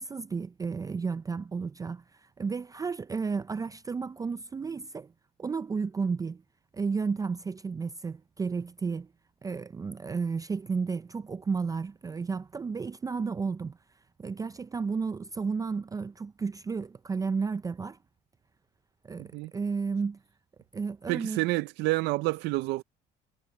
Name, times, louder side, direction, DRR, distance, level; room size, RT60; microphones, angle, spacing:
voice 1, 0.0-5.1 5.4-6.4 6.7-9.1 9.4-13.8 14.2-18.0 19.0-20.2 20.7-21.4, right 5 dB, 20° right, 0.4 m, -32 dB
voice 2, 19.2-19.5 21.1-22.8, right 21 dB, 85° right, 0.4 m, -29 dB
cardioid pair, 110°, 17 cm